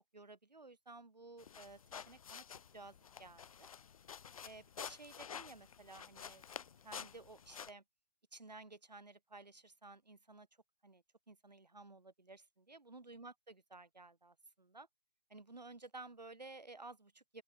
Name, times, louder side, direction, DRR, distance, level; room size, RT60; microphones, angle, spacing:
voice 1, 0.1-1.8 2.1-2.4 2.7-3.7 4.4-6.5 6.8-7.8 8.3-10.5 10.8-14.9 15.3-17.4, right 3 dB, 85° right, 7.2 m, -54 dB
sound 1, 1.4-7.7, left 7 dB, 55° left, 0.9 m, -50 dB
open air
figure-of-eight pair, 140°, 21 cm